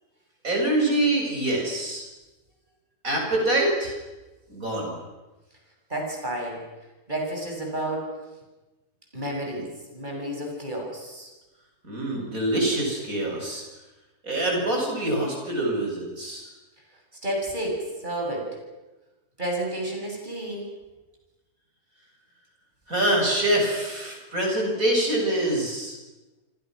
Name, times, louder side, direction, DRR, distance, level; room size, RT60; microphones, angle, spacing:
voice 1, 0.4-2.0 3.0-4.0 4.5-5.0 11.8-13.6 14.2-16.5 22.9-26.0, right 1 dB, 60° right, 0 dB, 8.1 m, -25 dB
voice 2, 5.9-6.6 7.1-8.1 9.1-11.3 17.2-18.6 19.4-20.7, right 1 dB, 30° right, 0 dB, 7.6 m, -31 dB
29.0 x 24.5 x 6.5 m, 1.1 s
omnidirectional pair, 1.6 m